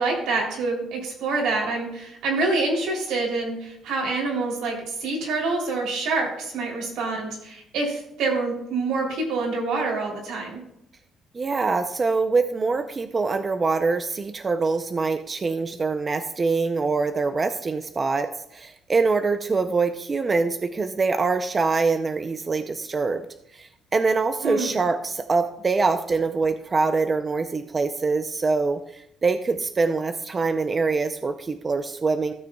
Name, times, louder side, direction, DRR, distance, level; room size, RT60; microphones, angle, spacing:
voice 1, 0.0-10.6 24.4-24.7, right 3 dB, 85° right, -1 dB, 3.1 m, -26 dB
voice 2, 11.3-23.2 23.5-32.3, right 4 dB, 25° right, 8 dB, 0.5 m, -24 dB
15.5 x 6.5 x 2.3 m, 0.76 s
cardioid pair, 130°, 0 cm